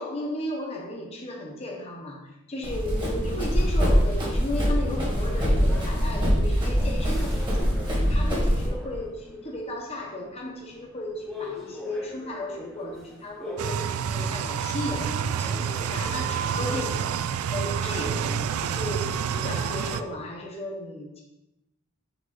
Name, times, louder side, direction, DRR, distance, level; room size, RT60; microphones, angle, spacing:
voice 1, 0.0-7.7 8.1-21.2, left 1 dB, 30° left, -1 dB, 0.9 m, -35 dB
Run, 2.6-8.7, equal, 20° right, 1.6 m, -23 dB
sound 1, 3.5-17.0, left 2 dB, 5° left, 1.1 m, -44 dB
sound 2, 13.6-20.0, right 7 dB, 80° right, 0.3 m, -28 dB
5.0 x 4.7 x 4.0 m, 0.92 s
head